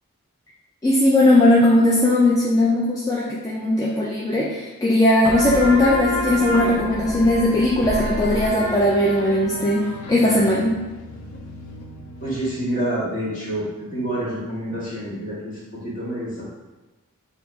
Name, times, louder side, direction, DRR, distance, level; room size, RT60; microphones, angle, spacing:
voice 1, 0.8-10.8, left 1 dB, 15° left, -5 dB, 0.3 m, -18 dB
sound 1, 5.2-12.5, left 1 dB, 75° left, 0.7 m, -29 dB
voice 2, 12.2-13.7 13.9-16.5, right 1 dB, 35° left, -8 dB, 1.4 m, -27 dB
3.9 x 2.7 x 3.4 m, 1.2 s
head